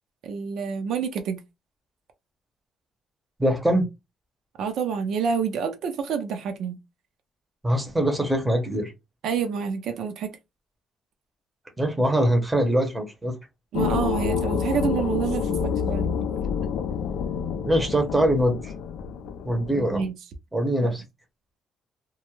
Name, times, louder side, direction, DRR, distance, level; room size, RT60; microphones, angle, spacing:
voice 1, 0.2-1.4 4.6-6.8 9.2-10.4 13.7-16.1 19.8-20.1 20.8-20.9, right 6 dB, 70° right, 0.5 m, -28 dB
voice 2, 3.4-3.9 7.6-8.9 11.8-13.3 17.6-18.7 19.4-20.0 20.5-21.0, right 1 dB, 10° right, 0.7 m, -23 dB
sound 1, 13.7-20.1, left 7 dB, 85° left, 0.3 m, -28 dB
2.2 x 2.0 x 2.9 m
cardioid pair, 130°, 0 cm